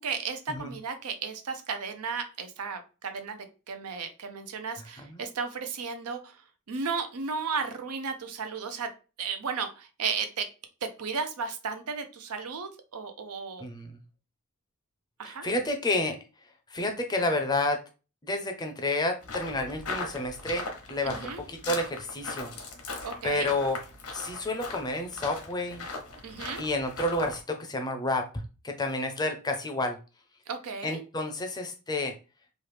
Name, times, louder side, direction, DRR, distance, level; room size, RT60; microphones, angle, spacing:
voice 1, 0.0-6.4 6.7-8.9 9.2-10.5 10.8-13.6 15.2-15.5 21.1-21.4 23.0-23.5 26.2-26.6 30.5-31.0, right 5 dB, 85° right, 8 dB, 0.6 m, -34 dB
voice 2, 15.2-16.2 16.7-17.8 18.2-22.5 23.2-23.8 24.1-25.9 26.6-28.3 28.6-30.0 30.8-32.1, left 2 dB, 20° left, 5 dB, 0.5 m, -30 dB
sound 1, 19.2-27.4, left 3 dB, 80° left, 0.8 m, -39 dB
3.1 x 2.3 x 3.2 m, 0.33 s
head